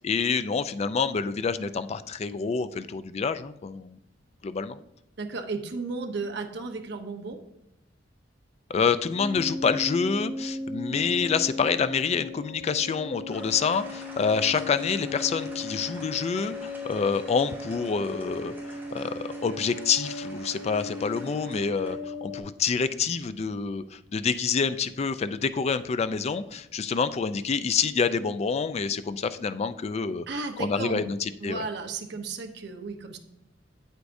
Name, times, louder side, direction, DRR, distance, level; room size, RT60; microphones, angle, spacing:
voice 1, 0.0-4.0 4.4-4.8 8.7-18.5 18.9-30.3 30.6-31.6, left 5 dB, 35° left, 12 dB, 0.3 m, -27 dB
voice 2, 5.2-7.4 30.3-31.1 31.4-33.2, right 3 dB, 65° right, 5 dB, 0.9 m, -34 dB
sound 1, 9.1-22.4, left 2 dB, 50° left, 3.0 m, -37 dB
sound 2, 13.3-21.9, right 1 dB, 10° right, 2.4 m, -47 dB
8.3 x 8.1 x 2.6 m, 0.82 s
head